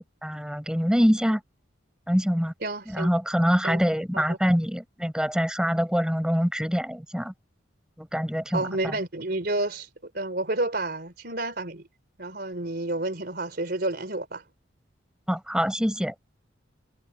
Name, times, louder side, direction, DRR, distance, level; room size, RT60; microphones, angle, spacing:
voice 1, 0.0-1.4 2.1-2.5 2.9-7.3 8.0-9.0 15.3-16.1, equal, 5° right, 7.0 m, -25 dB
voice 2, 2.6-3.1 3.6-3.8 4.1-4.4 8.5-9.9 10.1-11.9 12.2-14.4, right 2 dB, 50° right, 3.8 m, -30 dB
head